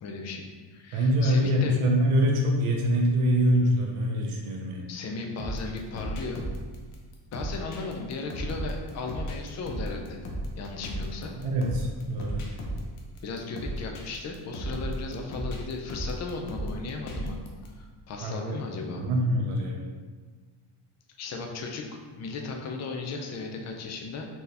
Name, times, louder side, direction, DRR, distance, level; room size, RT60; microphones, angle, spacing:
voice 1, 0.0-1.8 4.9-6.4 7.3-10.2 10.6-11.3 13.2-17.4 17.8-19.1 21.2-24.3, left 4 dB, 35° left, 2 dB, 0.4 m, -36 dB
voice 2, 0.9-4.9 11.3-12.4 18.2-18.6 18.9-19.8, equal, 80° right, 0 dB, 0.7 m, -24 dB
sound 1, 5.4-17.7, right 1 dB, 80° left, 0.9 m, -35 dB
4.3 x 2.8 x 3.3 m, 1.4 s
cardioid pair, 170°, 50 cm